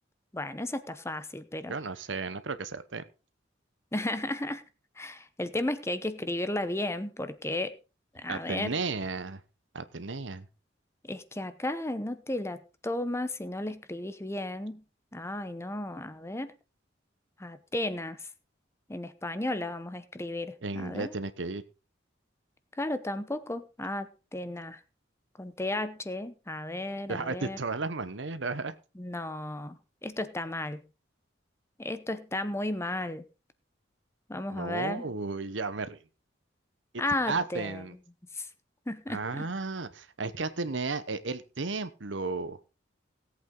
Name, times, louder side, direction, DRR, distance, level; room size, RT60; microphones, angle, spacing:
voice 1, 0.3-1.7 3.9-4.6 5.0-7.8 8.1-8.8 11.0-14.8 15.1-16.5 17.4-18.2 18.9-21.1 22.8-24.8 25.4-27.6 29.0-29.8 30.0-30.8 31.8-33.2 34.3-35.0 37.0-37.7 38.4-38.5 38.9-39.5, left 1 dB, 15° left, 0.8 m, -34 dB
voice 2, 1.7-3.0 8.3-9.4 9.7-10.5 20.6-21.6 27.1-28.8 34.5-36.0 37.3-38.0 39.1-42.6, right 3 dB, 70° right, 1.0 m, -34 dB
17.5 x 8.3 x 3.8 m
head